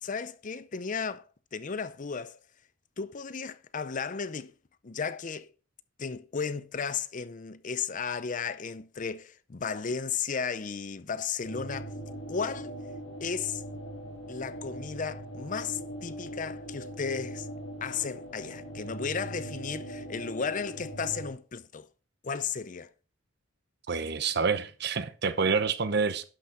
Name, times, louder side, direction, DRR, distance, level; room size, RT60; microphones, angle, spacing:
voice 1, 0.0-1.3 1.5-2.4 3.0-4.5 4.8-5.5 6.0-11.9 12.3-12.7 13.2-13.6 14.3-17.5 17.8-21.9 22.2-22.9, left 6 dB, 40° left, 0.6 m, -34 dB
sound 1, 11.4-21.3, right 1 dB, 85° left, 5.0 m, -41 dB
voice 2, 23.9-26.2, right 5 dB, 55° right, 0.9 m, -27 dB
11.5 x 6.1 x 4.4 m
head